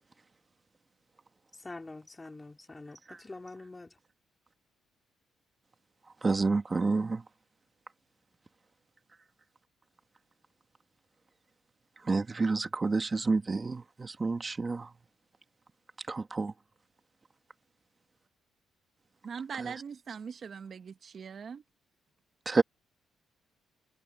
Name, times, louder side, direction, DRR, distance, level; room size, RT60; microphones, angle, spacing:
voice 1, 1.6-3.9, left 2 dB, 20° left, 3.3 m, -45 dB
voice 2, 6.2-7.2 12.0-14.9 16.1-16.5 19.6-19.7 22.5-22.6, right 3 dB, 30° right, 2.0 m, -29 dB
voice 3, 19.2-21.6, right 6 dB, 50° right, 1.5 m, -41 dB
cardioid pair, 90°, 0 cm